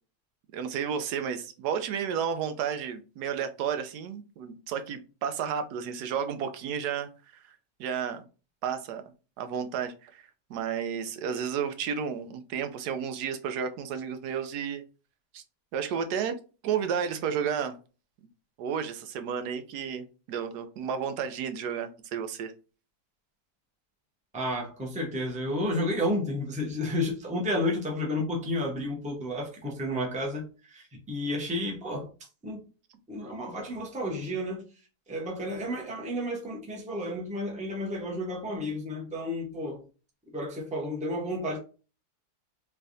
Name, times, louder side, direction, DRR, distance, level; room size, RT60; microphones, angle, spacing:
voice 1, 0.5-8.2 8.6-9.0 9.4-14.8 15.3-15.4 15.7-16.4 16.6-17.8 18.6-22.5, right 7 dB, 85° right, 1.2 m, -32 dB
voice 2, 24.3-32.1 32.4-32.6 33.1-34.6 35.1-39.8 40.3-41.6, left 1 dB, 5° right, 0.6 m, -31 dB
3.4 x 3.3 x 2.6 m
omnidirectional pair, 1.7 m